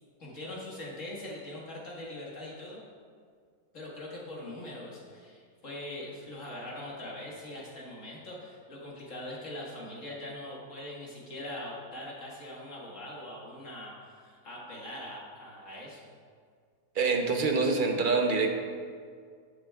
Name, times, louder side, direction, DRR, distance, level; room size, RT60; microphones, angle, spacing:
voice 1, 0.2-2.8 3.7-16.1, left 1 dB, 55° left, -4 dB, 2.0 m, -42 dB
voice 2, 16.9-18.5, right 4 dB, 45° right, 3 dB, 0.8 m, -25 dB
13.0 x 7.9 x 2.4 m, 2.1 s
omnidirectional pair, 1.6 m